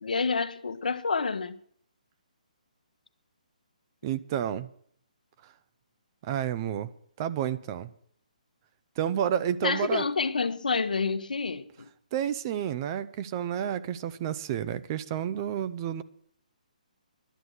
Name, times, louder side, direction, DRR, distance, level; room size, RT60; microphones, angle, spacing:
voice 1, 0.0-1.6 9.6-11.9, left 4 dB, 80° left, 1.0 m, -28 dB
voice 2, 4.0-4.7 5.4-5.5 6.2-6.9 7.2-7.9 9.0-10.0 12.1-16.0, right 10 dB, 30° right, 0.6 m, -30 dB
11.5 x 9.6 x 7.9 m
hypercardioid pair, 155°, 4 cm